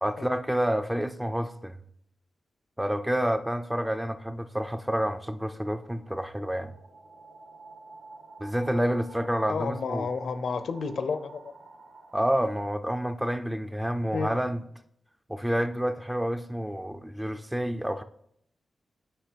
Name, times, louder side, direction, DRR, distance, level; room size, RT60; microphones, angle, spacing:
voice 1, 0.0-1.8 2.8-6.7 8.4-10.1 12.1-14.6 15.3-18.0, equal, 5° right, 0.3 m, -29 dB
sound 1, 5.5-12.8, right 3 dB, 75° right, 1.3 m, -50 dB
voice 2, 9.5-11.5 14.1-14.3, left 5 dB, 65° left, 0.5 m, -31 dB
8.4 x 3.0 x 5.0 m
wide cardioid pair, 145°, 0 cm